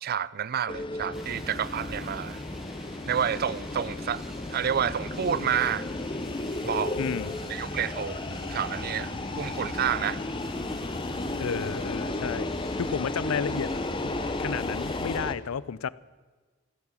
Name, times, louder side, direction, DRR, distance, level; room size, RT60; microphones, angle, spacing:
voice 1, 0.0-2.4 3.1-4.2 4.5-5.9 6.6-7.0 7.5-10.2, right 8 dB, 45° right, 0.4 m, -29 dB
sound 1, 0.7-15.3, left 2 dB, 25° left, 0.6 m, -34 dB
sound 2, 1.1-15.2, equal, ahead, 1.6 m, -43 dB
voice 2, 7.0-7.3 11.4-12.5 12.7-13.7 14.0-14.1 14.4-15.9, left 6 dB, 75° left, 0.5 m, -31 dB
14.5 x 12.0 x 7.2 m
head